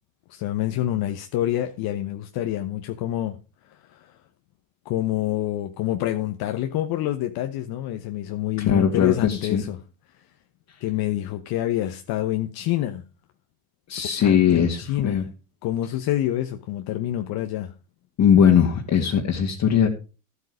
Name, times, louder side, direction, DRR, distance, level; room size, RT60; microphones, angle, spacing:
voice 1, 0.3-3.4 3.7-4.2 4.8-9.8 10.8-13.0 14.2-15.3 15.6-17.7, left 13 dB, 55° left, 1.1 m, -27 dB
voice 2, 8.6-9.6 13.9-15.2 18.2-19.9, left 8 dB, 40° left, 2.2 m, -20 dB
12.0 x 8.2 x 5.0 m
hypercardioid pair, 85°, 43 cm